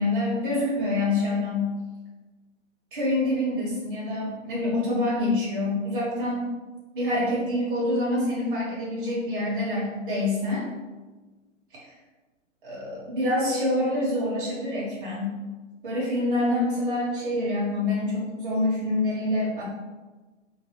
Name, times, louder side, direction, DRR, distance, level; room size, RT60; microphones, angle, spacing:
voice 1, 0.0-1.7 2.9-6.5 6.9-10.6 12.6-15.3 15.8-19.6, left 1 dB, 40° right, -8 dB, 1.5 m, -26 dB
3.9 x 2.1 x 3.0 m, 1.2 s
hypercardioid pair, 175°, 39 cm